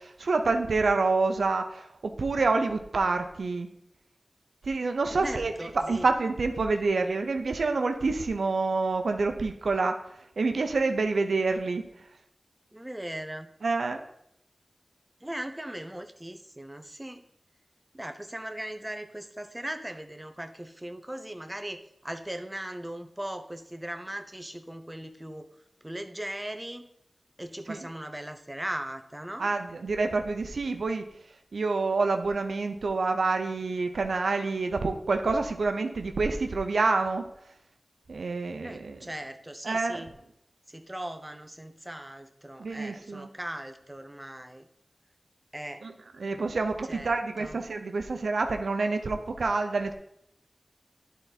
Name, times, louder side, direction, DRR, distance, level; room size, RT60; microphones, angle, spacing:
voice 1, 0.0-1.8 2.2-3.7 4.7-10.0 10.4-11.8 13.6-14.0 27.7-27.8 29.4-31.0 31.5-37.2 38.1-39.0 39.6-40.0 42.6-43.3 45.8-45.9 46.2-49.9, right 3 dB, 90° right, 6 dB, 0.7 m, -27 dB
voice 2, 5.1-6.1 12.7-13.5 15.2-17.2 17.9-25.5 25.8-26.9 27.4-29.5 38.6-40.1 40.7-44.7 45.5-45.8 46.9-47.6, right 1 dB, 15° right, 7 dB, 0.8 m, -39 dB
11.5 x 4.0 x 4.1 m, 0.76 s
wide cardioid pair, 55°, 0 cm